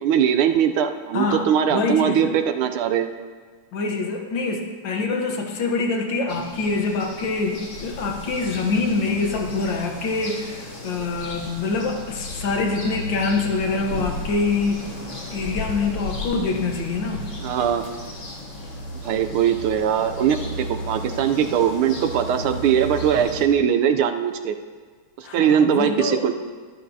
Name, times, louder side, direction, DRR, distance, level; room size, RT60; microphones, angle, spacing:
voice 1, 0.0-3.1 17.4-17.8 19.0-24.6 25.2-26.3, right 8 dB, 80° right, 8 dB, 1.4 m, -21 dB
voice 2, 1.1-2.3 3.7-14.8 15.3-17.3 25.2-26.2, left 3 dB, 65° left, 2 dB, 1.5 m, -25 dB
sound 1, 6.3-23.4, left 1 dB, 90° left, 2.9 m, -34 dB
12.5 x 11.5 x 2.7 m, 1.5 s
omnidirectional pair, 2.4 m